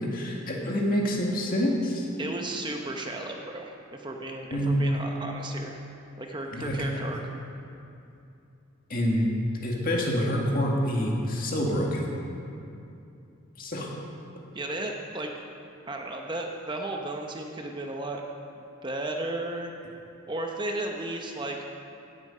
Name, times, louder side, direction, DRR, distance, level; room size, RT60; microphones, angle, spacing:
voice 1, 0.0-2.1 4.5-4.8 6.5-6.9 8.9-9.3 9.6-12.0 13.6-13.9, equal, 45° left, -1 dB, 1.9 m, -27 dB
voice 2, 2.2-5.8 6.2-7.2 14.5-15.3 15.9-18.2 18.6-19.7 20.3-21.6, right 2 dB, 20° right, 2 dB, 0.8 m, -34 dB
17.0 x 8.6 x 5.5 m, 2.7 s
head